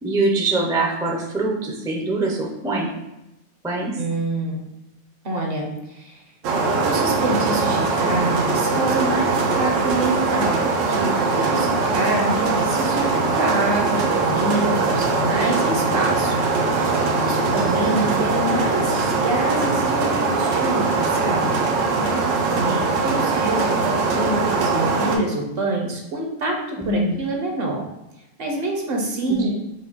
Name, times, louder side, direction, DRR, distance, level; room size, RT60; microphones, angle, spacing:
voice 1, 0.0-2.9 3.6-4.0 12.2-12.5 21.9-22.3 22.5-22.8 26.8-27.2 29.2-29.5, right 2 dB, 5° right, -2 dB, 0.3 m, -24 dB
voice 2, 4.0-4.6 5.2-6.2 6.8-16.4 16.7-21.6 22.5-27.8 28.4-29.5, right 1 dB, 55° right, 1 dB, 0.9 m, -26 dB
sound 1, 6.4-25.2, right 4 dB, 85° right, 1.0 m, -21 dB
5.1 x 2.3 x 4.1 m, 0.92 s
omnidirectional pair, 1.3 m